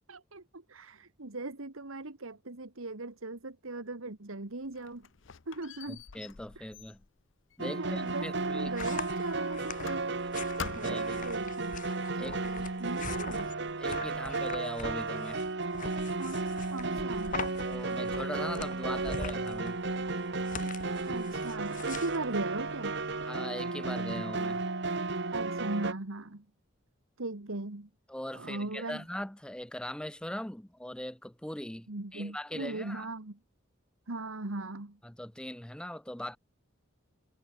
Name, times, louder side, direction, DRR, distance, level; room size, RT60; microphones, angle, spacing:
voice 1, 0.1-5.1 5.5-6.0 6.6-6.7 7.6-10.1 10.6-11.8 12.1-13.5 16.2-16.4 16.7-17.4 21.1-23.0 25.3-26.5 27.2-27.9 28.3-29.0 31.9-33.4 34.1-35.0, right 2 dB, 80° right, 1.8 m, -39 dB
Squeak, 4.5-8.3 8.8-10.3 10.6-11.2, left 6 dB, 65° left, 0.8 m, -46 dB
voice 2, 5.9-7.0 7.6-8.7 10.7-11.3 12.2-12.4 13.8-15.4 17.6-19.8 23.3-24.6 28.1-33.1 35.0-36.4, left 1 dB, 5° left, 0.6 m, -40 dB
sound 1, 7.6-25.9, right 3 dB, 55° right, 1.3 m, -34 dB
sound 2, 8.0-23.3, left 4 dB, 40° left, 3.0 m, -44 dB
head